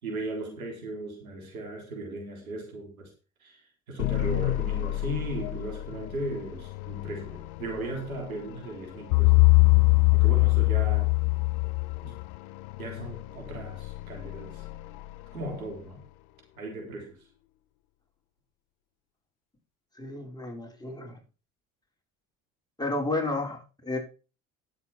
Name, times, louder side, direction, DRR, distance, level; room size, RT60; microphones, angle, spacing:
voice 1, 0.0-3.1 3.4-9.4 10.1-11.1 12.0-12.1 12.8-14.6 15.3-16.0 16.6-17.2, right 2 dB, 90° right, 2 dB, 4.0 m, -37 dB
sound 1, 4.0-16.1, left 14 dB, 70° left, 1.1 m, -36 dB
sound 2, 9.1-12.2, left 29 dB, 55° left, 0.4 m, -20 dB
voice 2, 20.0-21.2 22.8-24.0, left 2 dB, 10° left, 1 dB, 4.6 m, -32 dB
11.0 x 8.1 x 4.4 m, 0.33 s
hypercardioid pair, 65°, 41 cm